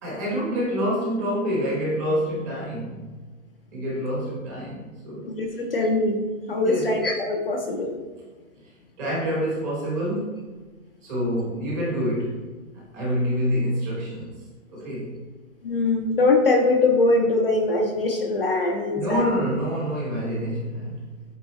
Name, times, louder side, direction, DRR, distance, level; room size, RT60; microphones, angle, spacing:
voice 1, 0.0-3.1 3.7-5.6 6.6-6.9 9.0-10.4 11.0-12.4 12.7-14.4 14.7-15.1 18.9-21.0, equal, 10° right, -6 dB, 0.9 m, -27 dB
voice 2, 5.2-8.0 15.6-19.2, left 2 dB, 45° left, 2 dB, 0.5 m, -22 dB
8.2 x 3.7 x 3.0 m, 1.3 s
hypercardioid pair, 175°, 42 cm